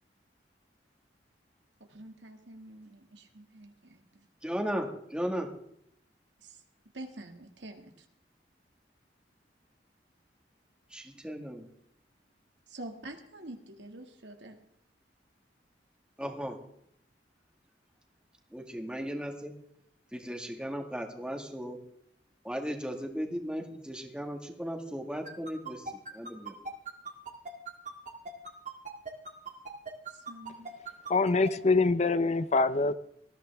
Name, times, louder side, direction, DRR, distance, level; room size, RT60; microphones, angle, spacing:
voice 1, 1.9-4.0 6.4-6.6 6.9-8.1 12.7-14.6 30.1-30.7, right 1 dB, 90° right, 4 dB, 2.1 m, -46 dB
voice 2, 4.4-5.5 10.9-11.7 16.2-16.6 18.5-19.5 20.1-21.8 22.4-26.6, equal, 5° right, 2 dB, 1.8 m, -36 dB
sound 1, 25.2-31.5, right 4 dB, 45° right, 2.1 m, -39 dB
voice 3, 31.1-32.9, left 3 dB, 40° left, 14 dB, 0.6 m, -24 dB
19.5 x 14.5 x 3.5 m, 0.73 s
head